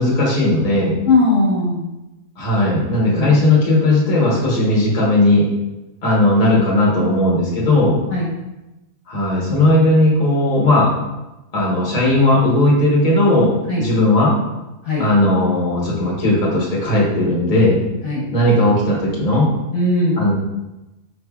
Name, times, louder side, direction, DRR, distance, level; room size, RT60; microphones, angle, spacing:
voice 1, 0.0-0.9 2.4-5.5 6.0-8.0 9.1-10.9 11.5-13.5 13.8-14.3 15.0-17.8 18.3-19.5 20.2-20.3, left 1 dB, 30° left, -4 dB, 1.0 m, -16 dB
voice 2, 1.0-1.8 3.1-3.3 8.1-8.3 13.7-13.8 14.8-15.1 18.0-18.3 19.7-20.2, left 2 dB, 55° left, -5 dB, 1.2 m, -18 dB
4.9 x 3.3 x 2.3 m, 0.99 s
omnidirectional pair, 1.6 m